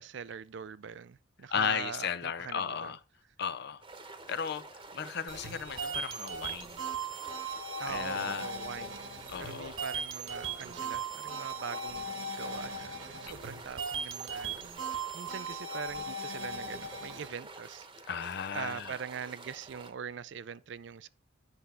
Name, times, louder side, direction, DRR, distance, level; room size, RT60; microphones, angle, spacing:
voice 1, 0.0-3.0 7.8-9.0 9.4-14.6 14.9-18.1 18.5-21.1, right 7 dB, 65° right, 0.4 m, -42 dB
voice 2, 1.5-3.0 3.4-3.8 4.3-6.7 7.8-8.5 9.3-9.8 18.1-19.0, left 7 dB, 55° left, 0.5 m, -35 dB
sound 1, 3.8-19.9, right 3 dB, 25° right, 1.0 m, -49 dB
sound 2, 5.3-17.3, right 3 dB, 80° right, 1.4 m, -38 dB
9.6 x 5.6 x 3.4 m
head